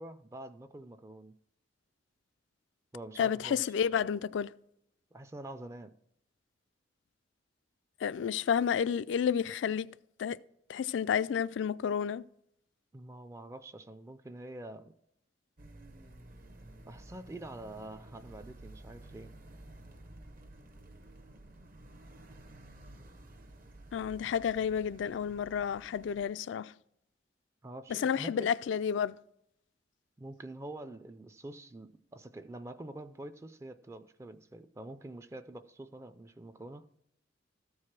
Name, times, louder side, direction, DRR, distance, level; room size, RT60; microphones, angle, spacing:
voice 1, 0.0-1.3 2.9-3.6 5.1-5.9 12.9-14.9 16.9-19.3 27.6-28.5 30.2-36.9, right 1 dB, 15° right, 0.4 m, -46 dB
voice 2, 3.2-4.5 8.0-9.9 10.2-10.4 10.7-12.2 23.9-26.7 28.0-29.2, left 7 dB, 75° left, 0.3 m, -30 dB
sound 1, 15.6-26.3, right 1 dB, 50° right, 0.8 m, -52 dB
13.5 x 4.8 x 5.9 m
head